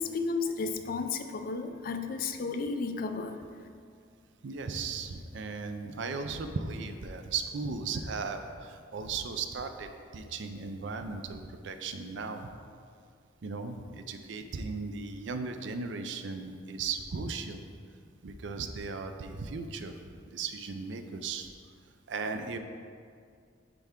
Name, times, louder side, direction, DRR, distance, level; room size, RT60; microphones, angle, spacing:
voice 1, 0.0-3.4, left 4 dB, 50° left, 7 dB, 0.4 m, -33 dB
voice 2, 4.4-12.5 13.4-17.6 18.2-20.0 20.3-21.5 22.1-22.6, right 4 dB, 70° right, 7 dB, 0.5 m, -36 dB
9.8 x 3.4 x 3.6 m, 2.2 s
head